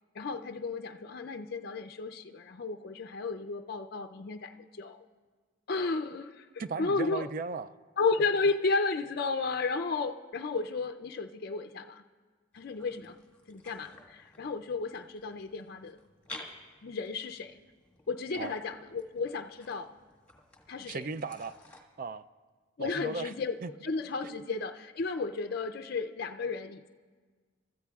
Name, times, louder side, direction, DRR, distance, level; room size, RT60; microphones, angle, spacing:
voice 1, 0.1-5.0 5.7-6.5 6.8-7.2 8.0-12.0 12.5-13.2 13.5-16.0 16.8-17.6 18.1-19.9 20.7-21.0 22.8-23.6 23.8-26.9, left 4 dB, 50° left, 6 dB, 0.4 m, -33 dB
voice 2, 6.6-7.7 18.4-18.6 20.9-22.2 22.8-23.3 23.6-23.7 24.2-24.5, right 4 dB, 45° right, 14 dB, 0.3 m, -37 dB
sound 1, 12.5-21.8, left 2 dB, 10° left, 1.6 m, -53 dB
30.0 x 14.0 x 2.3 m, 1.5 s
head